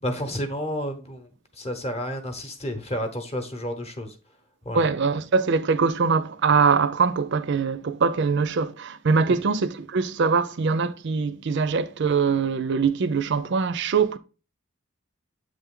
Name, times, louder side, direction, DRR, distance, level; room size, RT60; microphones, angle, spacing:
voice 1, 0.0-1.3 1.6-4.1 4.6-4.9 9.3-9.4, equal, 30° left, 0.9 m, -31 dB
voice 2, 4.7-14.2, right 5 dB, 55° right, 0.5 m, -23 dB
7.7 x 3.4 x 3.6 m
head